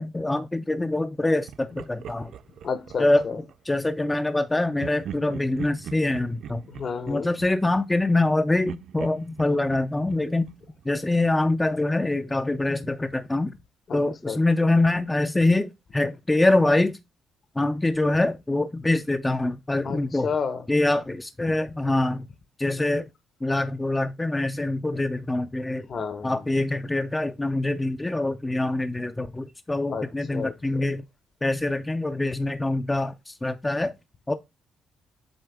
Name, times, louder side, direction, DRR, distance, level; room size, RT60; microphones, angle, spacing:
voice 1, 0.0-2.3 3.0-6.6 7.1-10.5 10.9-13.5 13.9-16.9 17.6-20.3 20.7-22.3 22.6-23.1 23.4-25.9 26.2-31.0 31.4-33.9 34.3-34.4, left 2 dB, 15° left, 0.4 m, -24 dB
Laughter, 1.5-3.6 4.8-8.3 8.7-11.4, right 9 dB, 70° right, 0.3 m, -42 dB
voice 2, 2.6-3.4 6.7-7.3 13.9-14.0 14.3-14.4 19.8-20.7 25.9-26.5 29.9-30.9, left 5 dB, 50° left, 0.9 m, -31 dB
7.9 x 3.7 x 3.4 m
cardioid pair, 90°, 0 cm